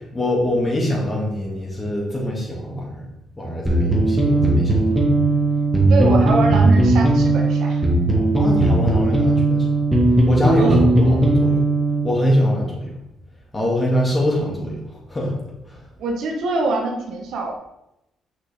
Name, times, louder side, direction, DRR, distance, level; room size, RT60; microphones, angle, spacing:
voice 1, 0.0-3.0 3.4-4.8 8.3-9.7 10.3-11.6 12.0-12.9 13.5-14.8 15.1-15.3 15.6-15.8, left 1 dB, 20° left, -3 dB, 2.5 m, -23 dB
sound 1, 3.7-12.1, right 2 dB, 5° right, 1.6 m, -17 dB
voice 2, 5.8-7.8 10.6-10.8 16.0-17.5, right 3 dB, 75° right, 1 dB, 1.3 m, -24 dB
6.4 x 6.0 x 3.6 m, 0.86 s
cardioid pair, 90°, 0 cm